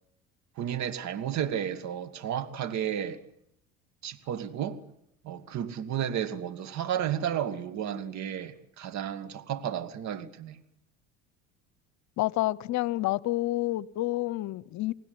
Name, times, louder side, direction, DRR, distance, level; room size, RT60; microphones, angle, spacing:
voice 1, 0.6-3.2 4.0-4.8 5.2-10.6, right 9 dB, 55° right, 2.3 m, -32 dB
voice 2, 12.2-14.9, left 17 dB, 60° left, 1.0 m, -29 dB
28.5 x 19.5 x 9.6 m
hypercardioid pair, 80°, 32 cm